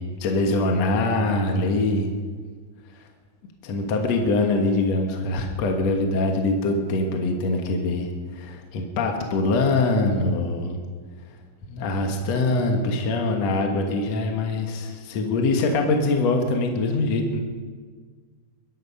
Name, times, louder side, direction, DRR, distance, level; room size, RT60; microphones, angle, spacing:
voice 1, 0.0-2.1 3.0-3.1 3.6-10.8 11.7-17.4, left 2 dB, 55° left, 2 dB, 2.1 m, -23 dB
23.5 x 10.5 x 5.4 m, 1.5 s
omnidirectional pair, 4.5 m